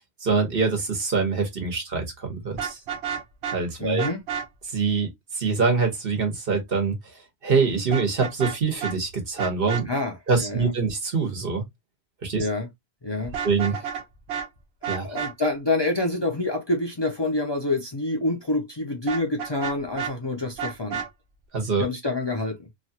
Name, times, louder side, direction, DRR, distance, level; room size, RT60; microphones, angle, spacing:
voice 1, 0.2-2.8 3.5-4.0 4.7-5.1 5.3-7.0 7.4-9.8 10.3-11.6 12.2-12.5 13.4-13.8 14.9-15.1 21.5-21.8, right 4 dB, 60° right, 1.3 m, -24 dB
Vehicle horn car horn honking, 2.5-3.6 4.0-4.5 7.9-8.6 8.8-8.9 9.4-9.8 13.2-14.0 14.3-14.5 14.8-15.3 19.1-20.1 20.6-21.1, right 7 dB, 85° right, 1.0 m, -30 dB
voice 2, 3.8-4.2 9.9-10.7 12.3-12.7 13.0-13.3 15.0-21.0 21.8-22.6, left 2 dB, 30° left, 0.6 m, -27 dB
3.0 x 2.3 x 2.7 m
omnidirectional pair, 1.1 m